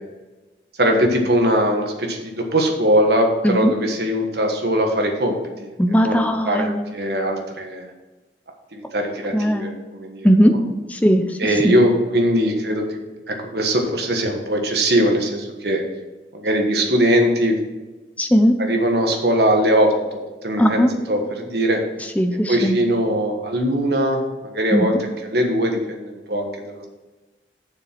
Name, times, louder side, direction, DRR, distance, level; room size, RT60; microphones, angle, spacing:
voice 1, 0.8-5.7 6.0-7.9 8.7-10.3 11.4-13.0 13.3-15.8 16.3-17.6 18.6-21.8 22.5-26.9, equal, 65° right, 3 dB, 1.4 m, -21 dB
voice 2, 5.8-6.9 9.3-9.7 10.2-10.6 10.9-11.3 11.6-11.8 18.2-18.5 20.6-20.9 22.2-22.8 24.7-24.9, equal, 10° left, 6 dB, 0.6 m, -17 dB
7.1 x 6.7 x 6.0 m, 1.2 s
head